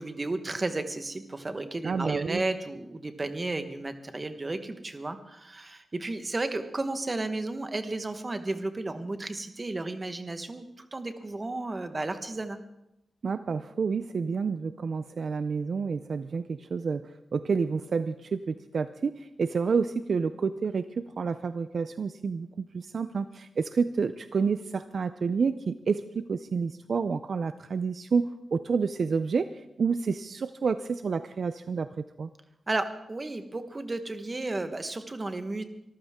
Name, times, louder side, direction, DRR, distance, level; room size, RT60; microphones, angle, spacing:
voice 1, 0.0-12.6 32.7-35.6, right 2 dB, 25° right, 9 dB, 1.2 m, -33 dB
voice 2, 1.8-2.4 13.2-31.9 32.2-32.3, right 5 dB, 55° right, 12 dB, 0.5 m, -29 dB
24.0 x 14.0 x 3.6 m, 0.84 s
wide cardioid pair, 145°, 0 cm